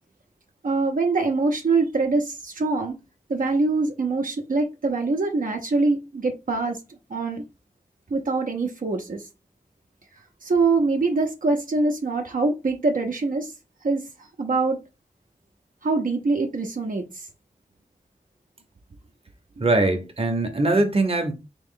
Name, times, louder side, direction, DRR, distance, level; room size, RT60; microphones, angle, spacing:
voice 1, 0.6-3.0 3.3-6.8 7.1-7.4 8.1-9.3 10.4-13.5 13.8-14.0 14.4-14.8 15.8-17.3, right 3 dB, 70° right, 0.7 m, -24 dB
voice 2, 19.6-21.3, right 2 dB, 45° right, 0.9 m, -21 dB
3.4 x 3.0 x 3.7 m
wide cardioid pair, 50°, 14 cm